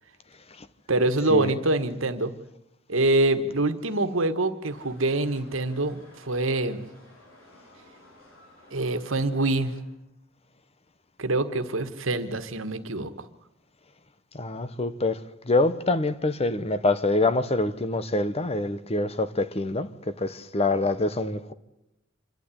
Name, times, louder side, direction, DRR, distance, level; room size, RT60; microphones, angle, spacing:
voice 1, 0.9-2.3 2.9-6.8 8.7-9.7 11.2-13.3, right 2 dB, 85° right, 1.6 m, -25 dB
sound 1, 4.6-9.8, left 1 dB, 70° left, 6.5 m, -54 dB
voice 2, 14.3-15.2 15.4-21.5, left 2 dB, 30° left, 1.1 m, -25 dB
26.5 x 12.0 x 9.8 m
head